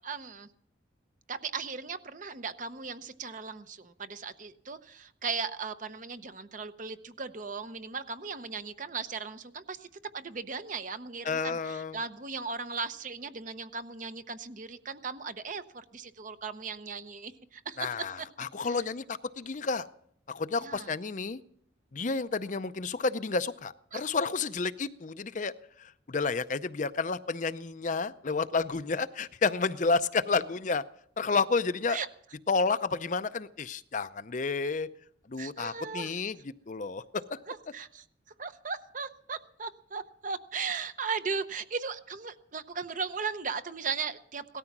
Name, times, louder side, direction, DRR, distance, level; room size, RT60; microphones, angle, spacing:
voice 1, 0.0-0.5 1.3-9.8 10.1-17.9 18.2-18.3 18.6-18.8 20.6-20.9 23.9-24.0 31.9-32.1 35.4-36.2 37.5-38.0 38.4-44.6, right 5 dB, 40° right, 11 dB, 0.8 m, -37 dB
voice 2, 11.2-12.0 17.8-19.9 20.3-21.4 21.9-25.5 25.8-30.8 31.2-32.0 32.5-34.9 35.3-37.4, left 4 dB, 40° left, 13 dB, 0.5 m, -30 dB
17.5 x 13.5 x 6.0 m, 0.67 s
head